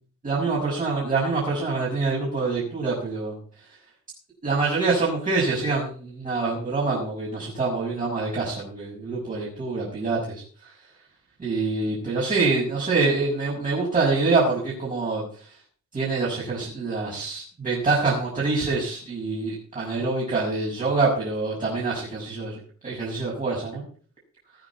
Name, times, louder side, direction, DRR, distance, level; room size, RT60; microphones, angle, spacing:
voice 1, 0.2-3.8 4.4-10.2 10.6-10.8 11.4-15.6 15.9-23.8, right 3 dB, 25° right, -5 dB, 6.4 m, -25 dB
20.0 x 9.6 x 4.2 m, 0.42 s
wide cardioid pair, 180°, 31 cm